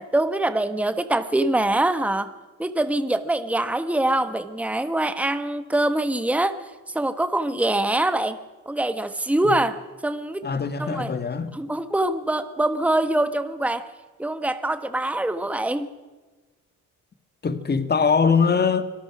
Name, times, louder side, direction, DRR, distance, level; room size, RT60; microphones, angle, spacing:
voice 1, 0.0-2.3 2.6-6.6 6.9-8.4 8.7-10.4 10.8-11.1 11.5-13.9 14.2-15.9, right 1 dB, 5° right, 11 dB, 1.2 m, -24 dB
voice 2, 10.4-11.5 17.4-18.8, left 5 dB, 35° left, 10 dB, 1.8 m, -22 dB
25.5 x 19.0 x 6.1 m, 1.2 s
cardioid pair, 90°, 30 cm